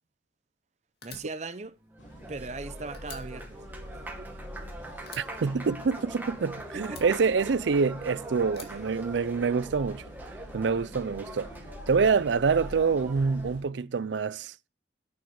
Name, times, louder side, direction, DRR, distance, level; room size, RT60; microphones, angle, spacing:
Fire, 1.0-2.6 2.9-4.7 5.1-6.4 6.8-8.0 8.5-9.7, left 5 dB, 60° left, 2.2 m, -50 dB
voice 1, 1.0-1.8 2.3-3.6 4.2-4.3 6.7-7.3 8.6-8.7, right 3 dB, 40° right, 0.7 m, -39 dB
Applause, 1.8-13.6, right 1 dB, 10° right, 1.6 m, -43 dB
sound 1, 2.0-13.6, equal, 85° left, 3.0 m, -46 dB
voice 2, 5.2-10.0 10.5-11.5 11.9-14.5, right 5 dB, 80° right, 0.5 m, -26 dB
10.5 x 8.7 x 4.8 m
head